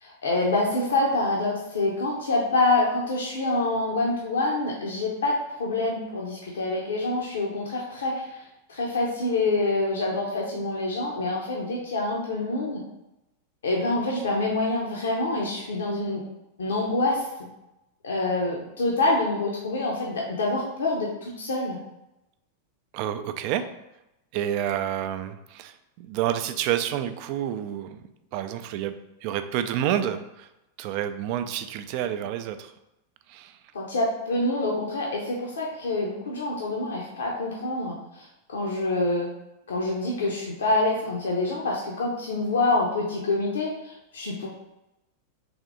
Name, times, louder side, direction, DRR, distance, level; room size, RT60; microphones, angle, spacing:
voice 1, 0.0-12.8 13.6-16.2 16.6-17.3 18.0-21.8 33.7-39.3 39.7-44.5, left 2 dB, 65° left, -2 dB, 0.7 m, -26 dB
voice 2, 22.9-23.6 24.3-28.0 28.3-28.9 29.2-30.5 30.8-32.7 33.3-33.6, right 10 dB, 45° right, 10 dB, 0.3 m, -29 dB
3.5 x 3.2 x 3.6 m, 0.91 s
figure-of-eight pair, 90°, 0 cm